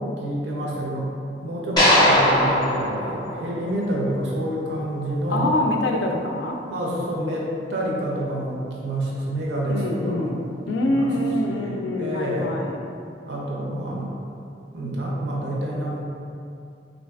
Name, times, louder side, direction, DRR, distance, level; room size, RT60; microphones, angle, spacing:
voice 1, 0.2-1.1 1.4-5.5 6.7-10.4 10.8-11.1 11.5-12.6 13.3-14.1 14.7-16.0, right 1 dB, 75° right, -3 dB, 0.5 m, -28 dB
sound 1, 1.8-4.1, left 1 dB, 25° left, 0.5 m, -20 dB
voice 2, 5.3-6.6 9.7-12.9, left 1 dB, 75° left, 2 dB, 0.3 m, -25 dB
3.2 x 2.5 x 2.3 m, 2.5 s
head